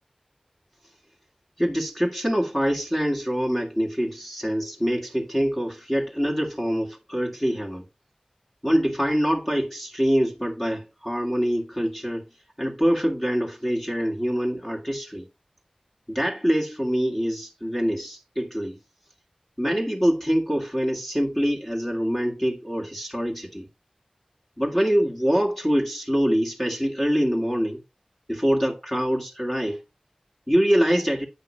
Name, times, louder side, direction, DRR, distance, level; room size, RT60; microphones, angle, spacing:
voice 1, 1.6-7.8 8.6-12.3 12.6-15.3 16.1-18.8 19.6-23.7 24.6-27.8 28.3-29.8 30.5-31.2, equal, 10° left, 2.1 m, -24 dB
8.7 x 5.6 x 3.3 m
wide cardioid pair, 60°, 2 cm